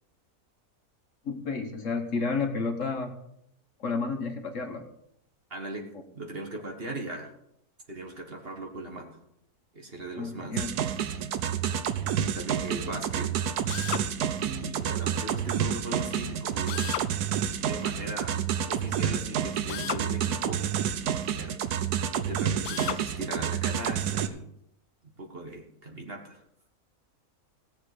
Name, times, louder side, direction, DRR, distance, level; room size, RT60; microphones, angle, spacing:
voice 1, 1.2-3.1 3.8-4.8 10.1-10.7, left 4 dB, 55° left, 4 dB, 1.6 m, -31 dB
voice 2, 5.5-7.3 7.9-9.2 9.7-10.7 11.1-11.3 12.3-13.3 14.4-17.0 17.6-18.4 18.7-21.0 21.3-21.6 22.1-24.4 25.2-26.4, right 2 dB, 40° right, 1 dB, 1.8 m, -38 dB
sound 1, 10.6-24.3, right 9 dB, 85° right, 1.3 m, -29 dB
Drill, 13.7-14.1 16.7-17.1 19.7-20.1 22.6-23.0, left 10 dB, 90° left, 1.2 m, -33 dB
17.5 x 7.4 x 5.0 m, 0.78 s
omnidirectional pair, 1.6 m